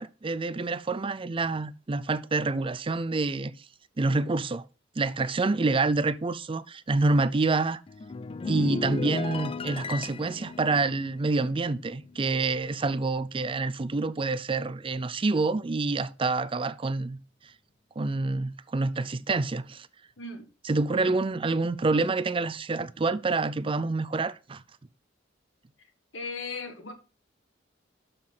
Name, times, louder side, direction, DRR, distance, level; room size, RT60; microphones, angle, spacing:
voice 1, 0.0-3.5 4.0-4.7 5.0-7.8 8.4-17.2 18.0-19.9 20.6-24.6, right 3 dB, 30° right, 0.5 m, -27 dB
sound 1, 7.9-12.5 12.8-13.1, left 4 dB, 30° left, 0.4 m, -36 dB
voice 2, 20.2-20.5 20.9-21.1 26.1-26.9, left 3 dB, 85° left, 1.8 m, -37 dB
6.8 x 6.0 x 5.6 m
head